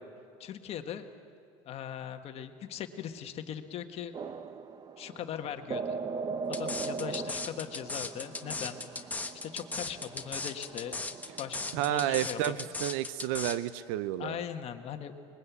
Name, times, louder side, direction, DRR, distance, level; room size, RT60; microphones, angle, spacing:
voice 1, 0.4-1.0 1.6-4.1 5.0-6.0 6.5-8.8 9.3-11.1 11.4-12.7 14.2-15.1, left 9 dB, 45° left, 7 dB, 1.6 m, -39 dB
sound 1, 4.1-12.1, right 5 dB, 30° right, 1.0 m, -40 dB
sound 2, 6.5-13.6, left 3 dB, 10° left, 1.3 m, -37 dB
voice 2, 11.7-14.4, right 13 dB, 75° right, 14 dB, 0.6 m, -31 dB
24.5 x 21.5 x 8.3 m, 2.4 s
supercardioid pair, 115°, 14 cm